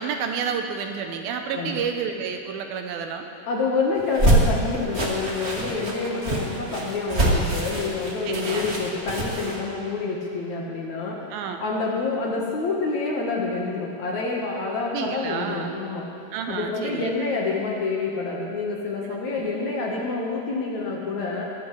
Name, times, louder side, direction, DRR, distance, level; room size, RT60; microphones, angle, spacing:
voice 1, 0.0-3.3 8.3-8.6 11.3-11.6 14.9-15.7 16.3-17.1 19.4-19.5, right 6 dB, 80° right, 5 dB, 2.5 m, -30 dB
voice 2, 3.5-11.3 11.6-16.1 16.5-21.4, left 4 dB, 60° left, -2 dB, 2.2 m, -27 dB
sound 1, 4.0-9.6, right 1 dB, 55° right, 0.7 m, -24 dB
21.0 x 13.5 x 3.2 m, 2.7 s
omnidirectional pair, 4.4 m